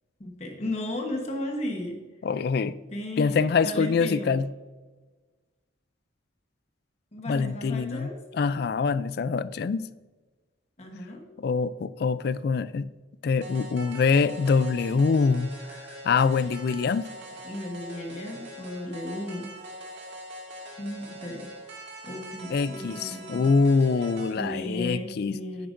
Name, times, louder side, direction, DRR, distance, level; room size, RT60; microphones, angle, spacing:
voice 1, 0.2-2.0 2.9-4.4 7.1-8.2 10.8-11.2 17.4-19.5 20.8-21.5 22.0-23.5 24.0-24.1 24.4-25.7, left 1 dB, 35° left, 2 dB, 1.1 m, -35 dB
voice 2, 2.2-2.8 3.2-4.5 7.3-8.1 8.3-9.9 11.4-12.9 13.2-15.8 16.0-17.1 22.5-25.4, left 5 dB, 50° left, 16 dB, 0.3 m, -24 dB
sound 1, 13.4-24.4, right 1 dB, 55° right, 1.8 m, -43 dB
10.0 x 8.8 x 2.5 m, 1.3 s
head